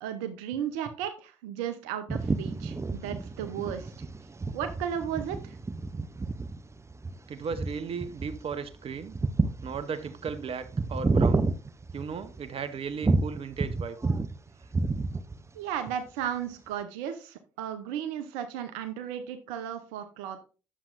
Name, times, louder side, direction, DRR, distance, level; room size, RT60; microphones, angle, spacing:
voice 1, 0.0-3.9 4.5-5.6 15.5-20.4, right 9 dB, 85° right, 0.7 m, -35 dB
sound 1, 2.1-12.5 13.0-14.4 14.6-15.5, right 3 dB, 25° right, 0.7 m, -30 dB
voice 2, 7.3-9.1 9.6-11.5 11.9-14.0, right 6 dB, 50° right, 0.9 m, -35 dB
10.0 x 7.2 x 2.5 m
hypercardioid pair, 50°, 12 cm